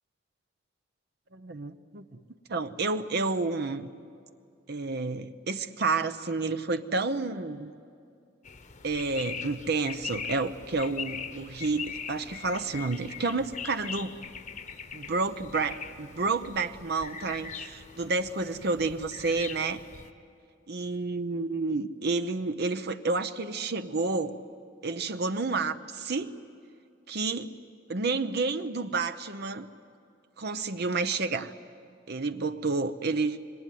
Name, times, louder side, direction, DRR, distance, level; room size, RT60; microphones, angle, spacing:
voice 1, 1.3-2.1 2.5-3.9 4.7-7.7 8.8-14.1 14.9-19.8 20.7-24.4 24.8-26.3 27.1-27.5 27.9-29.7 30.4-31.5 32.1-33.4, right 3 dB, 60° right, 10 dB, 0.8 m, -30 dB
sound 1, 8.4-20.1, left 6 dB, 40° left, 1.0 m, -41 dB
26.5 x 23.0 x 9.3 m, 2.3 s
head